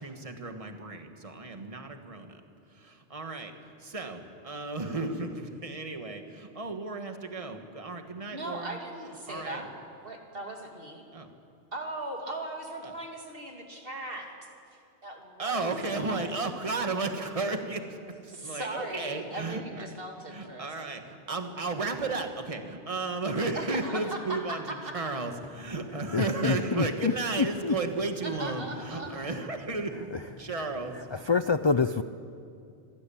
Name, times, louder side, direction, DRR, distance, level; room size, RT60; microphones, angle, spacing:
voice 1, 0.0-2.4 2.7-3.5 3.8-8.8 9.3-9.7 11.1-11.3 12.8-12.9 15.4-19.9 20.3-30.1 30.4-31.1, right 3 dB, 30° right, 5 dB, 1.6 m, -34 dB
voice 2, 8.3-9.7 10.0-11.0 11.7-14.3 15.0-16.2 18.3-20.9 23.5-24.9 28.2-29.1, right 1 dB, 55° right, 1 dB, 3.0 m, -38 dB
voice 3, 26.1-27.1 27.4-27.8 31.3-32.0, left 5 dB, 40° left, 11 dB, 0.4 m, -26 dB
25.0 x 16.0 x 8.6 m, 2.4 s
omnidirectional pair, 1.1 m